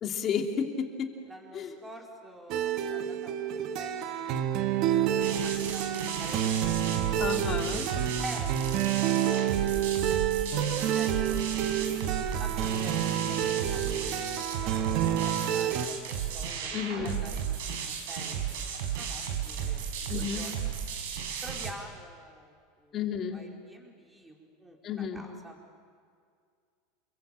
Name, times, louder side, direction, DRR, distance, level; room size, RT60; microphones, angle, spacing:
voice 1, 0.0-1.1 1.5-1.7 7.2-7.9 16.7-17.2 20.1-20.4 22.9-23.5 24.8-25.2, left 7 dB, 35° left, 3 dB, 2.9 m, -32 dB
voice 2, 1.2-6.7 8.2-11.3 12.4-14.0 14.6-16.7 17.0-18.4 18.9-20.7 21.4-23.0 23.3-25.6, equal, 10° right, 0 dB, 4.7 m, -48 dB
sound 1, 2.5-15.9, right 10 dB, 50° right, 1.6 m, -29 dB
sound 2, 5.2-21.7, right 8 dB, 75° right, 4.9 m, -34 dB
29.5 x 22.5 x 8.9 m, 2.1 s
supercardioid pair, 140°, 0 cm